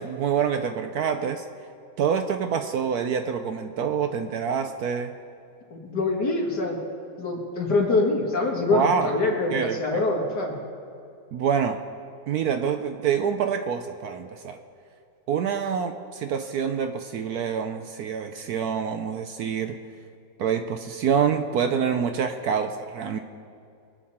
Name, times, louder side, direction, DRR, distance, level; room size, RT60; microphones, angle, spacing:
voice 1, 0.0-1.5 2.0-5.1 8.7-9.2 9.5-9.8 11.3-11.8 12.3-14.6 15.3-19.8 20.4-23.2, right 7 dB, 70° right, 7 dB, 1.0 m, -26 dB
voice 2, 5.7-6.8 7.2-10.6, left 2 dB, 60° left, -1 dB, 2.6 m, -24 dB
24.0 x 8.3 x 4.3 m, 2.5 s
omnidirectional pair, 2.0 m